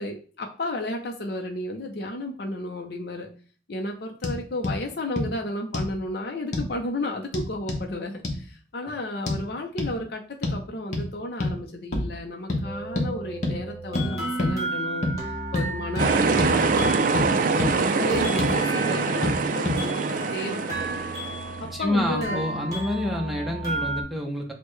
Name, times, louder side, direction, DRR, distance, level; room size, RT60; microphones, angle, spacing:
voice 1, 0.0-3.3 3.7-15.1 15.5-21.0 21.6-22.4, left 1 dB, 60° left, 2 dB, 0.5 m, -33 dB
sound 1, 4.2-4.4 4.6-4.8 5.2-5.3 5.7-5.9 6.5-6.7 7.3-7.8 8.2-8.4 9.3-9.4 9.8-9.9 10.4-10.6 10.9-11.1 11.4-11.6 11.9-12.1 12.5-12.6 12.9-13.1 13.4-13.6 13.9-14.1 14.4-14.5 15.0-15.2 15.5-15.7 16.0-16.1 16.4-16.5 16.8-17.3 17.6-17.7 18.1-18.6 19.2-19.4 19.6-19.8, left 2 dB, 40° left, 0.9 m, -27 dB
sound 2, 12.6-24.0, right 2 dB, 20° right, 1.5 m, -33 dB
sound 3, 16.0-21.7, right 4 dB, 45° right, 0.3 m, -24 dB
voice 2, 21.7-24.5, left 1 dB, ahead, 0 dB, 0.6 m, -28 dB
6.2 x 2.2 x 3.1 m, 0.40 s
head